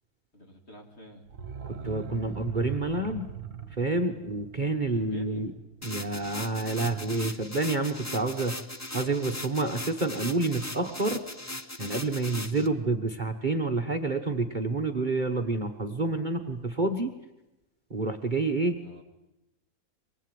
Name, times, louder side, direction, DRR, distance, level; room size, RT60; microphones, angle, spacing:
voice 1, 0.3-1.2 4.9-5.5 18.8-19.0, left 1 dB, 40° left, 2 dB, 3.3 m, -47 dB
sound 1, 1.3-6.0 6.3-6.4, right 8 dB, 50° right, 1.7 m, -41 dB
voice 2, 1.7-3.3 3.8-5.5 5.8-8.6 8.9-11.2 11.8-17.1 17.9-18.8, right 3 dB, 30° right, 3 dB, 1.4 m, -28 dB
sound 2, 5.8-12.7, left 1 dB, 15° left, 0.8 m, -39 dB
24.5 x 20.0 x 9.2 m, 0.95 s
omnidirectional pair, 1.7 m